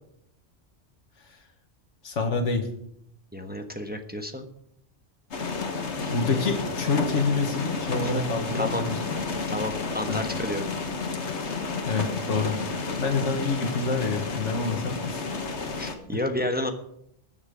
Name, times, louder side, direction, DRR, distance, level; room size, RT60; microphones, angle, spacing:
voice 1, 2.0-2.7 6.1-9.2 10.1-10.2 11.9-12.6 13.0-15.2 16.1-16.2, left 4 dB, 90° left, 3 dB, 1.8 m, -27 dB
voice 2, 3.3-4.4 6.1-6.4 8.0-8.1 8.5-8.8 9.5-10.6 15.8-16.7, left 1 dB, 10° right, 5 dB, 1.0 m, -31 dB
sound 1, 5.3-16.0, left 4 dB, 70° left, 1.7 m, -31 dB
20.5 x 7.3 x 5.0 m, 0.75 s
omnidirectional pair, 1.2 m